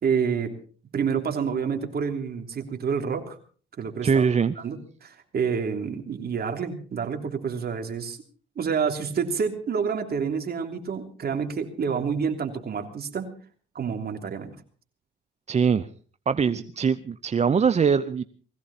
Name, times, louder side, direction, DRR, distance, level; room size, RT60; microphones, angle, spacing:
voice 1, 0.0-0.6 0.9-3.4 3.8-4.2 4.6-8.2 8.6-13.3 13.7-14.5 16.5-16.6, right 6 dB, 50° right, 5 dB, 3.2 m, -28 dB
voice 2, 4.0-4.5 15.5-15.9 16.3-18.2, right 6 dB, 35° right, 14 dB, 0.7 m, -22 dB
21.0 x 15.5 x 4.3 m, 0.43 s
cardioid pair, 90°, 20 cm